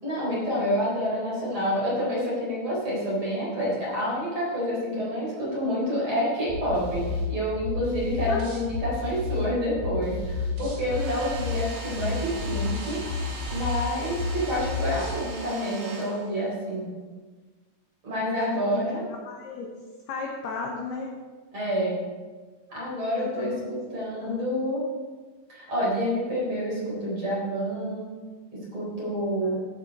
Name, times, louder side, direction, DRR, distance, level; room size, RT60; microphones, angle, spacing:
voice 1, 0.0-13.0 13.5-16.9 18.0-19.0 21.5-21.9 22.7-24.8 25.5-28.1 28.7-29.6, equal, 25° right, -6 dB, 4.1 m, -28 dB
sound 1, 6.5-15.2, left 4 dB, 80° right, 5.4 m, -31 dB
voice 2, 8.1-8.4 10.9-11.1 18.2-18.9 19.3-19.7 20.1-21.1 23.2-23.7 24.2-24.4 29.4-29.6, left 5 dB, 75° left, 0 dB, 2.4 m, -34 dB
Domestic sounds home sounds, 10.8-16.7, right 2 dB, 65° right, 2.0 m, -40 dB
15.5 x 7.5 x 4.2 m, 1.4 s
omnidirectional pair, 6.0 m